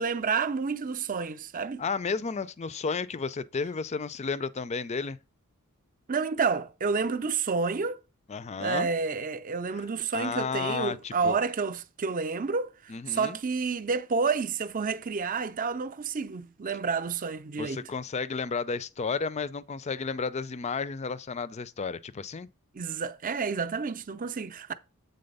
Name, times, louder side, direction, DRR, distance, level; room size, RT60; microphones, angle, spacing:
voice 1, 0.0-1.8 6.1-8.0 8.6-17.8 22.7-24.7, right 5 dB, 35° right, 0.5 m, -29 dB
voice 2, 1.8-5.2 8.3-8.9 10.1-11.4 12.9-13.4 17.6-22.5, left 5 dB, 30° left, 0.4 m, -32 dB
7.8 x 4.1 x 5.3 m
head